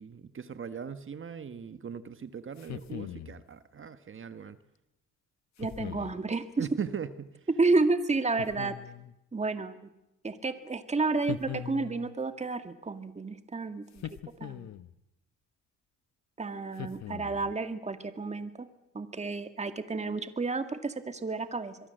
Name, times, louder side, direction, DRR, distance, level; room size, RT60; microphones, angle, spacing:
voice 1, 0.0-4.6 6.6-7.3, right 7 dB, 40° right, 11 dB, 1.4 m, -39 dB
sound 1, 2.6-3.4 5.6-6.2 8.4-9.2 11.3-12.1 14.0-14.9 16.8-17.5, left 11 dB, 65° left, 1.1 m, -40 dB
voice 2, 5.6-6.7 7.6-8.7 9.3-9.8 10.2-14.0 14.4-14.8 16.4-18.7 18.9-21.8, right 3 dB, 20° right, 8 dB, 2.2 m, -31 dB
25.0 x 22.5 x 7.9 m, 0.89 s
cardioid pair, 90°, 30 cm